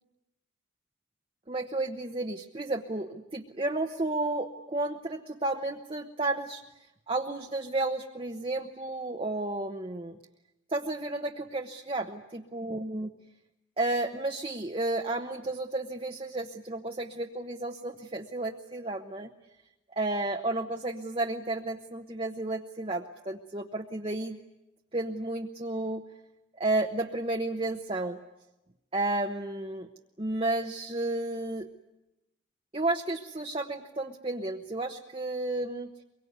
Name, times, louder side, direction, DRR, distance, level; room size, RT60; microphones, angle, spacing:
voice 1, 1.5-6.6 7.1-10.2 10.7-13.1 13.8-19.3 19.9-24.4 24.9-26.0 26.6-28.2 28.9-29.9 30.2-31.7 32.7-35.9, right 2 dB, 30° right, 2 dB, 1.0 m, -32 dB
24.0 x 23.0 x 9.4 m, 0.95 s
head